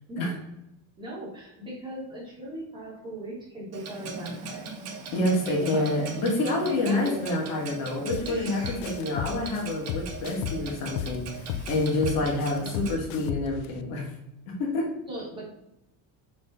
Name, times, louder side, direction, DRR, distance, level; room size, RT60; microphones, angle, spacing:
voice 1, 1.0-4.7 5.4-6.1 6.6-7.3 8.2-8.8 9.1-9.2 15.1-15.4, right 1 dB, 10° right, -6 dB, 2.8 m, -38 dB
Clock, 3.7-13.0, right 5 dB, 40° right, 1.4 m, -40 dB
voice 2, 5.1-14.1 14.5-14.9, left 2 dB, 60° left, -1 dB, 2.5 m, -28 dB
sound 1, 8.1-8.3 8.6-11.2 11.5-13.7, left 10 dB, 90° left, 0.7 m, -33 dB
6.3 x 5.9 x 3.8 m, 0.88 s
cardioid pair, 165°, 39 cm